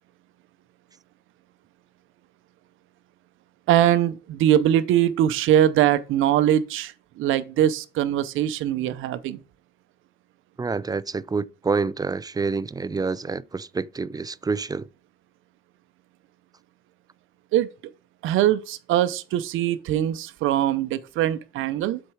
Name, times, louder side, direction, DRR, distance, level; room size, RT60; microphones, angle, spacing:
voice 1, 3.7-9.4 17.5-17.7 18.2-22.0, right 11 dB, 90° right, 0.6 m, -22 dB
voice 2, 10.6-14.9, right 4 dB, 20° right, 0.4 m, -27 dB
7.7 x 4.4 x 4.8 m
cardioid pair, 90°, 20 cm